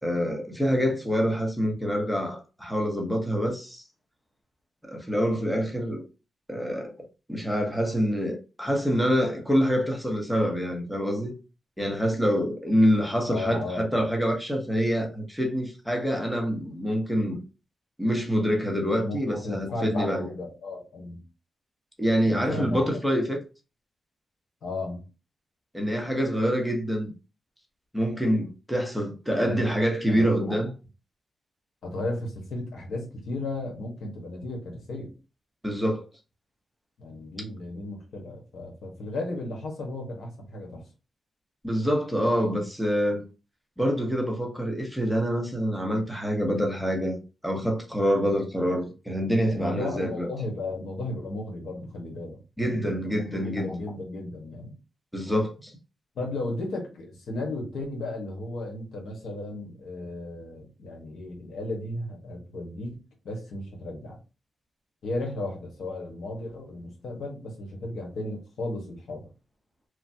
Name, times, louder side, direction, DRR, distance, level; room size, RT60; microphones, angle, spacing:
voice 1, 0.0-3.8 4.8-6.0 6.5-7.0 7.3-11.3 11.8-17.4 18.0-20.3 22.0-23.4 25.7-27.1 27.9-30.7 35.6-36.1 41.6-43.2 43.8-50.3 52.6-53.8 55.1-55.7, equal, ahead, 0.9 m, -26 dB
voice 2, 13.3-14.1 19.0-21.2 22.2-22.8 24.6-25.0 29.4-29.6 30.1-30.5 31.8-35.1 37.0-40.8 49.5-54.7 56.1-63.0 63.2-64.2 65.0-69.3, left 2 dB, 80° left, 1.2 m, -35 dB
3.1 x 2.3 x 2.7 m
cardioid pair, 80°, 0 cm